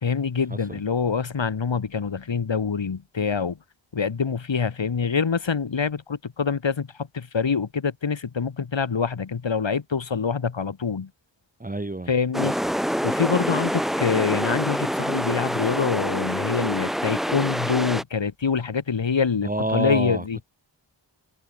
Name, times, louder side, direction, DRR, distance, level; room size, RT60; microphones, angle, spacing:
voice 1, 0.0-3.6 3.9-11.1 12.1-12.6 13.0-20.4, left 5 dB, 70° left, 4.6 m, -25 dB
voice 2, 11.6-12.1 19.4-20.2, right 2 dB, 20° right, 1.3 m, -27 dB
sound 1, 12.3-18.0, equal, ahead, 1.8 m, -26 dB
wide cardioid pair, 95°, 47 cm